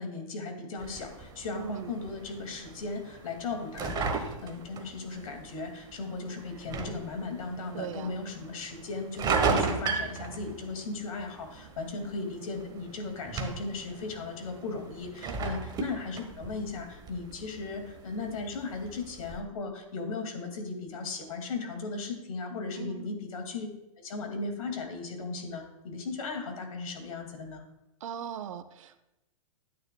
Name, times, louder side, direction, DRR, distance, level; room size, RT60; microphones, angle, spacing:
voice 1, 0.0-23.7 24.0-27.6, left 3 dB, 70° left, 4 dB, 2.1 m, -37 dB
sound 1, 0.8-19.4, right 4 dB, 20° right, 1.0 m, -36 dB
voice 2, 1.5-1.9 7.7-8.2 15.2-15.3 22.8-23.2 28.0-29.0, right 8 dB, 60° right, 11 dB, 0.7 m, -39 dB
11.5 x 9.1 x 2.2 m, 0.94 s
hypercardioid pair, 115°, 18 cm